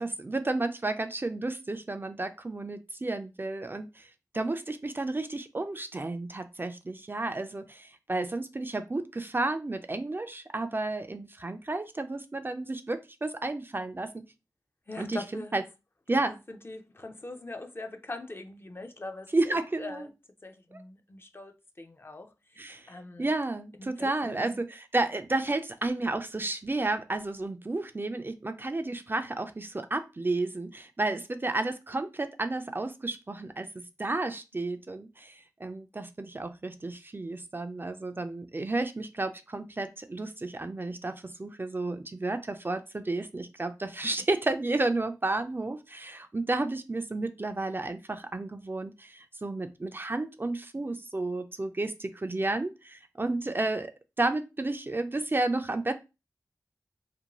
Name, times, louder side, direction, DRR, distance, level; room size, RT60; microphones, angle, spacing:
voice 1, 0.0-14.2 15.0-15.6 16.1-16.3 19.3-20.1 20.7-20.8 22.6-22.9 23.2-53.9 54.2-55.9, right 2 dB, 30° right, 0.3 m, -32 dB
voice 2, 14.9-15.6 16.5-20.1 20.4-21.5 21.8-22.6 22.9-23.3 23.8-24.6, left 2 dB, 35° left, 0.4 m, -42 dB
2.6 x 2.2 x 2.9 m
wide cardioid pair, 50°, 7 cm